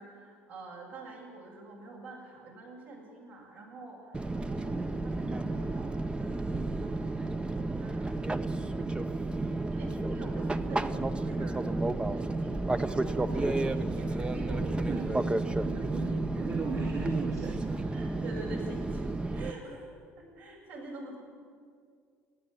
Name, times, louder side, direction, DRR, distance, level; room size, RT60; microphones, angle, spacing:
voice 1, 0.0-9.1 9.7-15.1 15.7-16.8 17.9-19.0 19.3-21.2, right 2 dB, 70° right, -3 dB, 7.1 m, -46 dB
Fixed-wing aircraft airplane, 4.1-19.5, right 2 dB, 15° right, 0.9 m, -32 dB
voice 2, 14.9-17.9, right 5 dB, 50° right, -3 dB, 2.7 m, -36 dB
29.5 x 10.5 x 9.0 m, 2.2 s
figure-of-eight pair, 60°, 7 cm